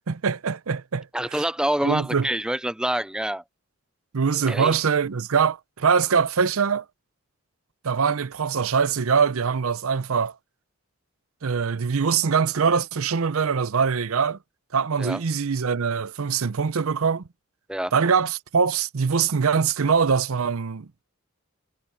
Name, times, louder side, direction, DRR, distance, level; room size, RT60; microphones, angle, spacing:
voice 1, 0.1-1.1 1.8-2.3 4.1-6.8 7.8-10.3 11.4-14.4 14.7-17.2 17.9-20.9, right 6 dB, 80° right, 0.6 m, -23 dB
voice 2, 1.1-3.4 4.4-4.7 15.0-15.2 17.7-17.9, right 1 dB, 5° right, 0.3 m, -26 dB
head